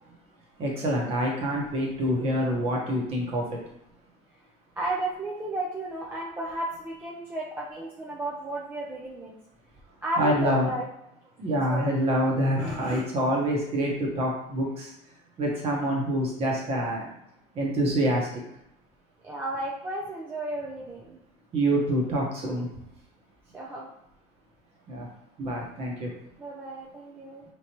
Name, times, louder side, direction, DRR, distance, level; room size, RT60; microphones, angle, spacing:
voice 1, 0.6-3.6 10.2-10.7 11.4-14.9 15.4-17.1 17.5-18.3 21.5-22.7 24.9-25.1 25.4-26.1, equal, 35° right, -2 dB, 1.1 m, -26 dB
voice 2, 4.8-9.3 10.0-10.8 11.7-11.9 12.6-13.1 19.2-21.2 23.5-23.9 26.4-27.4, right 1 dB, 10° right, -4 dB, 0.4 m, -33 dB
4.1 x 3.2 x 2.9 m, 0.81 s
cardioid pair, 165°, 18 cm